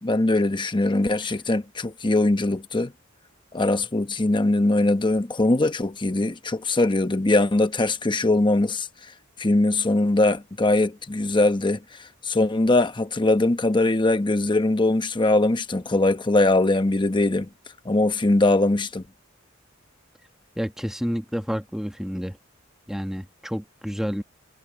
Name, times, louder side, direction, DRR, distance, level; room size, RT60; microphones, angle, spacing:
voice 1, 0.0-2.9 3.5-8.9 9.4-17.5 17.8-19.0, left 2 dB, 25° left, 0.9 m, -21 dB
voice 2, 20.6-22.4 22.9-24.2, equal, ahead, 1.6 m, -29 dB
head